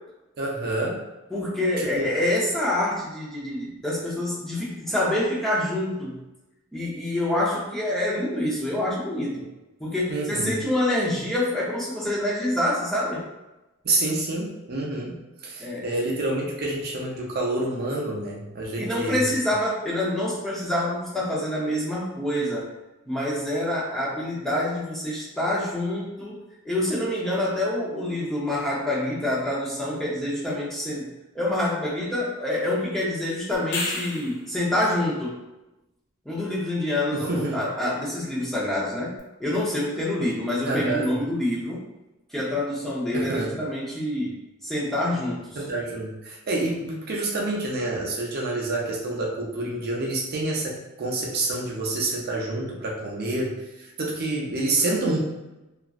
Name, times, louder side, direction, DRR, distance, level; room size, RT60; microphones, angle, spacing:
voice 1, 0.4-1.0 1.9-2.1 10.1-10.6 13.8-19.2 37.1-37.6 40.7-41.2 43.1-43.6 45.6-55.2, right 2 dB, 50° right, -2 dB, 0.5 m, -28 dB
voice 2, 1.3-6.2 6.7-9.5 9.8-13.3 15.6-15.9 18.8-22.7 23.1-26.4 26.6-31.1 31.3-35.4 36.2-41.8 42.3-44.3 44.6-45.6, left 1 dB, ahead, -7 dB, 0.7 m, -26 dB
sound 1, 33.5-34.5 39.2-39.3, left 2 dB, 60° left, 0.6 m, -30 dB
2.9 x 2.4 x 2.4 m, 1.0 s
head